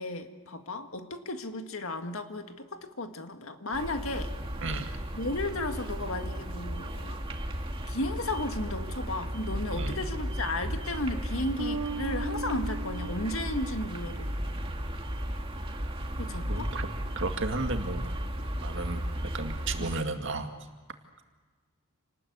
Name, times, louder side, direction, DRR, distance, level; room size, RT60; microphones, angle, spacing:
voice 1, 0.0-4.3 5.1-7.2 7.9-14.3 16.2-16.7 19.8-19.9, left 2 dB, 65° left, 6 dB, 1.9 m, -34 dB
sound 1, 3.7-20.0, equal, 25° right, 2.3 m, -35 dB
voice 2, 4.6-4.9 9.7-10.0 16.5-16.9 17.2-18.1 18.6-20.5, right 3 dB, 55° right, 5 dB, 2.2 m, -33 dB
Bass guitar, 11.6-14.6, right 3 dB, 85° right, 1.0 m, -38 dB
28.5 x 19.5 x 8.2 m, 1.5 s
head